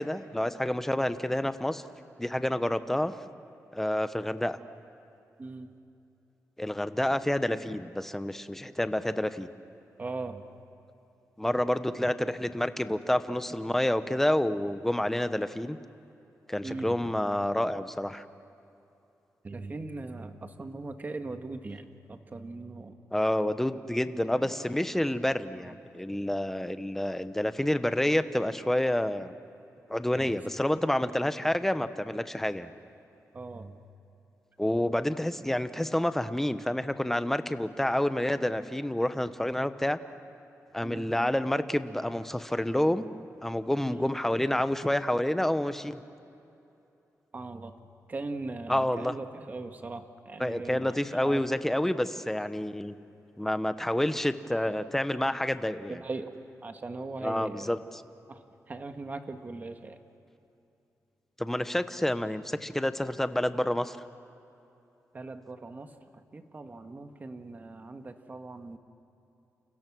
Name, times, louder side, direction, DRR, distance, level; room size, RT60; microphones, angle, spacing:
voice 1, 0.0-1.8 2.2-3.2 3.7-4.6 6.6-9.5 11.4-15.8 16.5-18.2 23.1-29.3 29.9-32.7 34.6-40.0 40.7-43.1 43.4-46.0 48.7-49.2 50.4-52.9 53.4-56.0 57.2-58.0 61.4-64.0, left 1 dB, 5° left, 11 dB, 1.0 m, -28 dB
voice 2, 10.0-10.4 16.6-17.0 19.4-23.0 24.4-25.2 25.6-25.8 30.1-30.3 33.3-33.8 40.8-41.1 43.9-44.2 47.3-47.7 48.1-51.4 55.9-56.3 56.6-57.7 58.3-60.0 65.1-65.9 66.3-68.8, right 3 dB, 30° right, 6 dB, 1.7 m, -40 dB
29.5 x 29.0 x 6.3 m, 2.8 s
wide cardioid pair, 120°, 6 cm